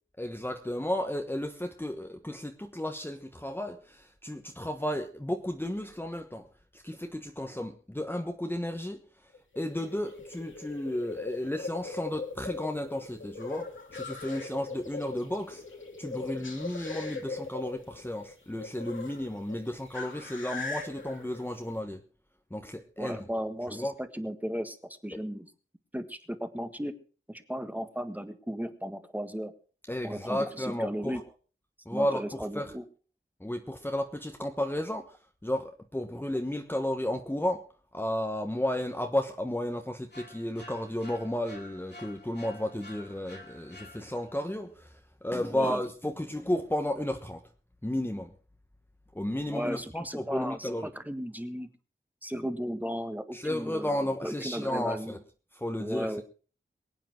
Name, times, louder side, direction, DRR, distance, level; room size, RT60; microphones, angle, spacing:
voice 1, 0.2-6.5 6.7-9.0 9.6-15.6 16.0-22.0 22.5-23.2 23.7-23.9 29.9-31.2 31.8-32.7 33.4-35.2 35.4-37.7 37.9-47.4 47.8-48.3 49.1-50.9 53.3-55.2 55.5-56.2, left 1 dB, 10° left, 1.2 m, -33 dB
sound 1, 9.3-21.8, left 3 dB, 75° left, 2.7 m, -40 dB
voice 2, 23.0-25.5 25.9-26.9 27.3-29.5 30.0-31.2 31.9-32.8 45.5-45.8 49.5-51.7 52.2-55.2 55.8-56.2, equal, 10° right, 1.6 m, -35 dB
sound 2, 40.1-44.5, left 2 dB, 55° left, 2.6 m, -50 dB
23.0 x 8.9 x 4.4 m
wide cardioid pair, 90°, 20 cm